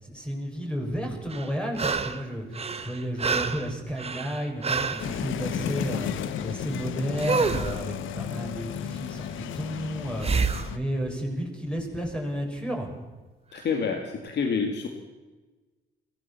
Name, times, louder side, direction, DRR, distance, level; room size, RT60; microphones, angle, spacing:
voice 1, 0.0-6.1 6.4-12.9, equal, 5° left, 1 dB, 6.7 m, -32 dB
sound 1, 1.3-2.2 2.5-5.1 7.2-7.8 10.2-10.7 13.6-13.7, right 4 dB, 30° right, 1.6 m, -28 dB
sound 2, 5.0-10.8, left 9 dB, 80° left, 1.3 m, -33 dB
voice 2, 13.5-14.9, left 5 dB, 60° left, 4 dB, 2.3 m, -28 dB
22.0 x 17.5 x 7.3 m, 1.3 s
cardioid pair, 90°, 20 cm